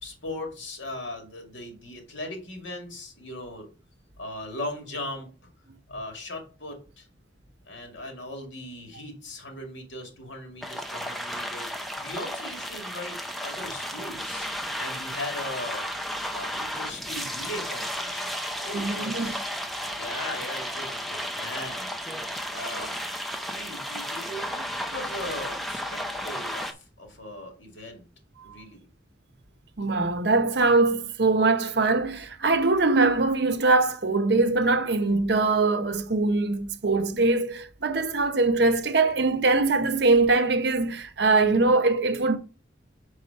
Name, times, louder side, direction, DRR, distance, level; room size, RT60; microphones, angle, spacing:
voice 1, 0.0-3.7 4.2-5.3 5.9-7.1 7.7-13.1 13.4-14.5 14.8-15.9 16.3-19.4 19.9-21.9 22.5-23.0 23.5-28.1 28.4-28.8, left 1 dB, 80° left, 2.2 m, -38 dB
sound 1, 10.6-26.7, equal, ahead, 0.5 m, -33 dB
voice 2, 18.7-19.3 29.8-42.4, right 3 dB, 60° right, 0.7 m, -22 dB
4.8 x 4.8 x 5.4 m
head